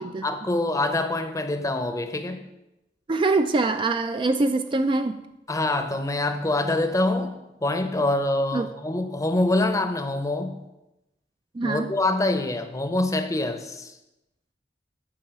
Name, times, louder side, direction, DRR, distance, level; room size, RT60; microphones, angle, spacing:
voice 1, 0.0-2.4 5.5-10.6 11.6-13.9, left 2 dB, 20° left, 8 dB, 0.7 m, -25 dB
voice 2, 3.1-5.2 8.5-8.7 11.5-11.9, right 3 dB, 25° right, 8 dB, 0.4 m, -24 dB
8.8 x 4.5 x 7.4 m, 0.93 s
head